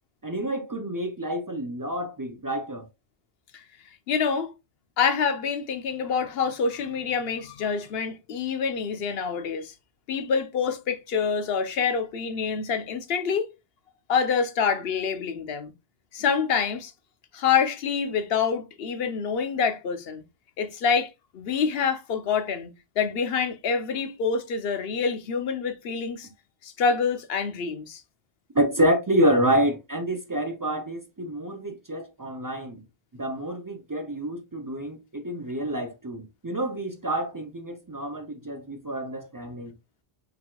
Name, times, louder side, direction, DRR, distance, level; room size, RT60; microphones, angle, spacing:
voice 1, 0.2-2.9 28.5-32.8 33.1-39.7, right 1 dB, 35° right, 0.3 m, -28 dB
voice 2, 4.1-4.5 5.0-9.7 10.1-13.5 14.1-15.7 16.1-16.9 17.3-20.2 20.6-26.3 26.6-28.0, left 6 dB, 75° left, 0.9 m, -26 dB
4.8 x 3.6 x 2.2 m
omnidirectional pair, 1.0 m